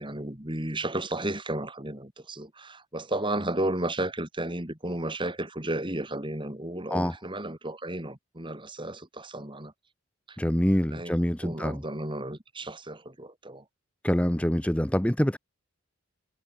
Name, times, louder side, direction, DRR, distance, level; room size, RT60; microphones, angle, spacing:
voice 1, 0.0-9.7 10.3-10.4 10.9-11.1 11.4-13.6, right 1 dB, 20° right, 2.8 m, -33 dB
voice 2, 10.4-11.8 14.0-15.4, equal, 5° left, 0.7 m, -25 dB
head